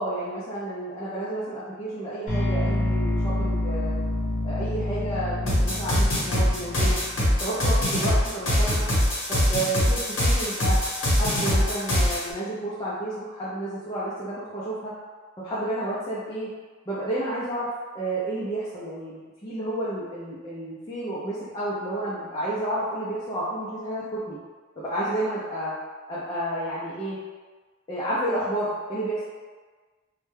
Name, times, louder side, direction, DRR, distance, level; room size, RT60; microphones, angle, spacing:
voice 1, 0.0-4.0 4.4-7.0 7.4-8.8 9.3-10.8 11.2-14.9 15.4-16.5 16.9-17.7 17.9-24.4 24.8-25.7 26.1-27.2 27.9-29.2, right 1 dB, 20° left, -10 dB, 0.4 m, -31 dB
sound 1, 2.3-8.3, left 1 dB, 40° left, 0.8 m, -28 dB
sound 2, 5.5-12.2, equal, 80° left, 0.9 m, -22 dB
2.2 x 2.1 x 3.1 m, 1.4 s
head